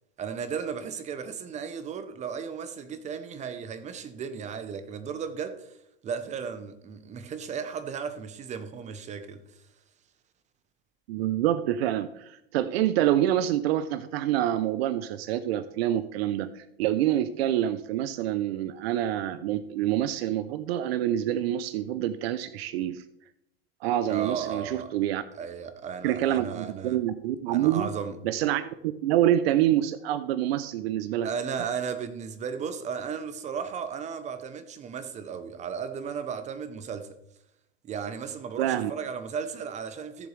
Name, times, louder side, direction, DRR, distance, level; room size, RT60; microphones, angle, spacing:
voice 1, 0.2-5.8 6.0-9.4 24.1-24.9 25.3-27.0 27.5-28.2 31.2-37.1 37.8-40.3, right 6 dB, 20° right, 0.8 m, -35 dB
voice 2, 11.1-23.0 23.8-25.2 26.0-27.9 28.2-31.3 38.6-38.9, right 12 dB, 75° right, 0.6 m, -26 dB
14.0 x 7.1 x 3.3 m
supercardioid pair, 140°, 31 cm